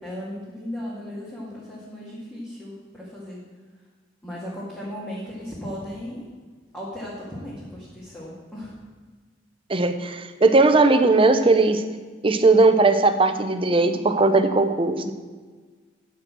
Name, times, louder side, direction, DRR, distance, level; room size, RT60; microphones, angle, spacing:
voice 1, 0.0-3.4 4.2-6.2 6.7-8.8, equal, 10° left, -8 dB, 2.2 m, -36 dB
voice 2, 9.7-11.8 12.2-15.1, right 3 dB, 30° right, 8 dB, 0.7 m, -18 dB
9.6 x 6.3 x 7.5 m, 1.4 s
head